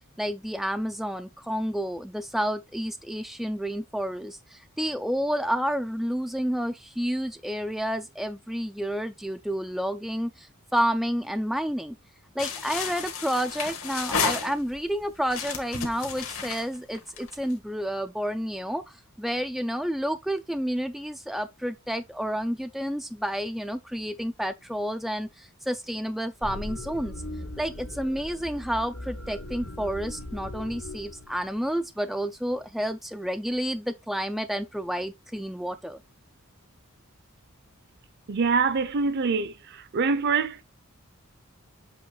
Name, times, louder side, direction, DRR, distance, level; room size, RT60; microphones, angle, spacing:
voice 1, 0.2-12.0 12.4-27.1 27.6-36.0, equal, ahead, 0.3 m, -30 dB
sound 1, 12.4-14.9 15.3-17.5, left 6 dB, 70° left, 1.7 m, -32 dB
sound 2, 26.4-31.7, left 1 dB, 85° left, 2.3 m, -39 dB
voice 2, 38.3-39.5 39.9-40.6, right 5 dB, 50° right, 0.6 m, -24 dB
7.7 x 3.1 x 3.9 m
head